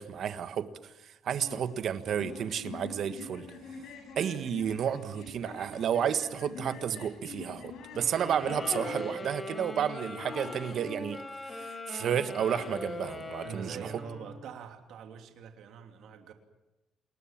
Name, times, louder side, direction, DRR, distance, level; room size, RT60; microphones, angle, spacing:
voice 1, 0.0-3.5 4.1-11.2 11.5-13.9, right 8 dB, 60° right, 11 dB, 1.5 m, -32 dB
sound 1, 1.4-8.8, left 4 dB, 80° left, 7.9 m, -46 dB
sound 2, 7.9-14.5, left 1 dB, 20° left, 5.3 m, -41 dB
Human voice, 8.3-9.3 10.2-10.9 12.3-13.0, left 3 dB, 35° left, 4.6 m, -43 dB
voice 2, 13.4-16.3, right 6 dB, 80° right, 4 dB, 3.0 m, -44 dB
28.5 x 21.0 x 7.4 m, 1.0 s
cardioid pair, 135°, 0 cm